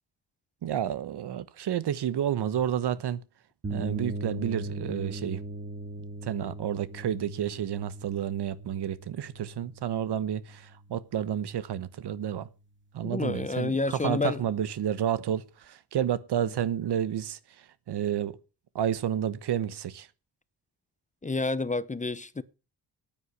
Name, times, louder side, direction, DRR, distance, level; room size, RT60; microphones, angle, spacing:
voice 1, 0.6-3.2 3.7-5.4 6.2-12.5 12.9-18.4 18.7-20.1, right 10 dB, 75° right, 1.1 m, -30 dB
sound 1, 3.6-11.4, right 2 dB, 30° right, 2.4 m, -39 dB
voice 2, 13.0-14.4 21.2-22.4, left 3 dB, 20° left, 0.8 m, -29 dB
9.6 x 9.2 x 8.2 m
cardioid pair, 90°, 41 cm